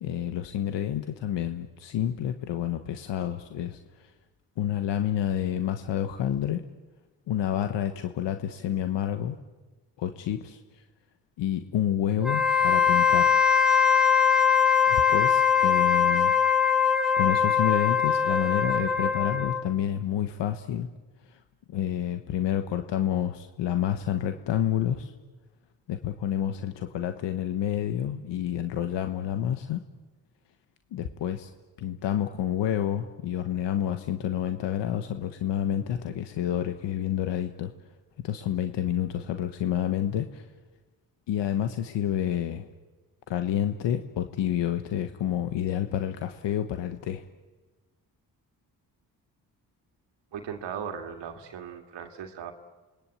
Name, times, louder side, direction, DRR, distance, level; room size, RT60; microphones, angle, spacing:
voice 1, 0.0-3.8 4.6-6.6 7.3-9.3 10.0-10.6 11.4-13.4 14.9-16.4 17.2-20.9 21.7-25.1 25.9-29.8 30.9-31.5 31.8-37.7 38.2-40.4 41.3-42.7 43.3-47.2, left 10 dB, 90° left, 7 dB, 1.4 m, -29 dB
Wind instrument woodwind instrument, 12.2-19.7, left 7 dB, ahead, 3.0 m, -22 dB
voice 2, 50.3-52.5, right 7 dB, 85° right, 4 dB, 2.3 m, -37 dB
27.5 x 22.0 x 8.6 m, 1.2 s
cardioid pair, 60°, 41 cm